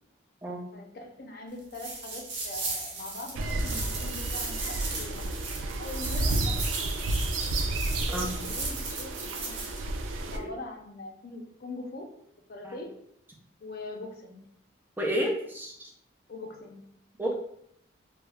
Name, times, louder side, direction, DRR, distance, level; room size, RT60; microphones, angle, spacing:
voice 1, 0.7-5.4 5.8-7.1 7.9-9.8 10.3-12.1 12.5-12.9 13.6-14.5 16.3-16.8, left 2 dB, 50° left, 2 dB, 0.4 m, -42 dB
sound 1, 1.7-9.8, right 3 dB, 65° right, 0.7 m, -37 dB
sound 2, 3.3-10.4, right 2 dB, 85° right, 0.3 m, -31 dB
voice 2, 15.0-15.9 17.2-17.3, equal, 10° right, 0 dB, 0.4 m, -30 dB
2.3 x 2.1 x 3.3 m, 0.71 s
head